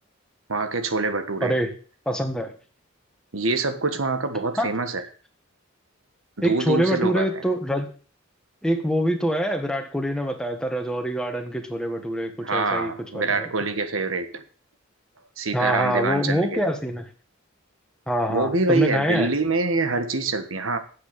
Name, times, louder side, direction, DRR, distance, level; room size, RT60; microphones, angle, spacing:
voice 1, 0.5-1.6 3.3-5.1 6.4-7.4 12.4-14.4 15.4-16.7 18.3-20.8, right 3 dB, 85° right, 1.4 m, -25 dB
voice 2, 1.4-1.7 2.0-2.5 4.6-4.7 6.4-7.9 8.6-13.5 15.5-17.1 18.1-19.3, equal, 5° left, 1.5 m, -25 dB
9.5 x 7.9 x 6.8 m
head